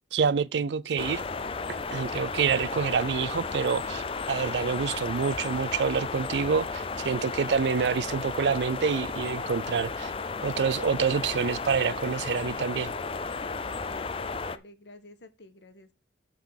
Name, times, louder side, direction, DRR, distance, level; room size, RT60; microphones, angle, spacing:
voice 1, 0.1-1.2 1.7-10.1 10.4-12.9, right 6 dB, 70° right, 0.4 m, -27 dB
sound 1, 1.0-14.6, left 4 dB, 30° left, 0.4 m, -34 dB
voice 2, 13.9-15.9, left 2 dB, 70° left, 1.2 m, -50 dB
9.2 x 3.8 x 6.4 m
head